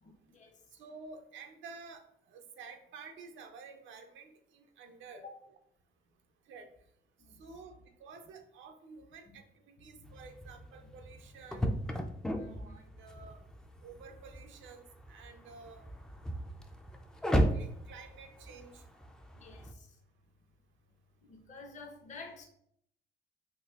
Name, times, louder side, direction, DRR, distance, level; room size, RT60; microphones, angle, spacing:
voice 1, 0.0-0.5 5.2-5.3 9.3-9.4 10.0-10.1 12.3-12.8 19.3-19.8 21.3-22.4, left 3 dB, 35° left, 2 dB, 0.6 m, -50 dB
voice 2, 0.7-5.2 6.5-6.7 7.4-11.7 12.4-13.4 13.8-15.9 17.5-18.8, right 4 dB, 75° right, 6 dB, 0.5 m, -51 dB
sound 1, 10.0-19.7, equal, 5° left, 0.3 m, -36 dB
4.1 x 2.6 x 2.3 m, 0.71 s
cardioid pair, 90°, 20 cm